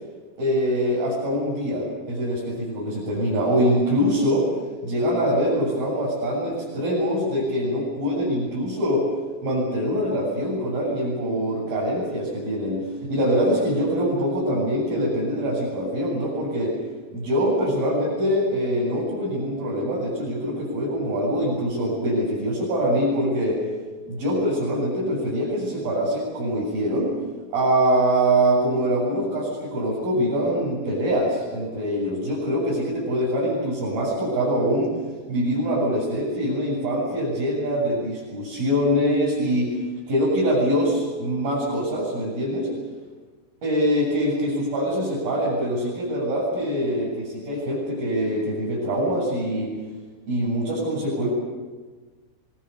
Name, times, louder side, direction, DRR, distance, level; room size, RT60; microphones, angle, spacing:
voice 1, 0.4-4.5 4.8-9.1 9.4-16.8 17.1-23.6 24.1-27.1 27.5-34.9 35.3-39.7 40.1-42.7 43.6-49.7 50.3-51.3, equal, 60° right, -7 dB, 9.8 m, -24 dB
27.5 x 24.5 x 7.1 m, 1.4 s
omnidirectional pair, 4.8 m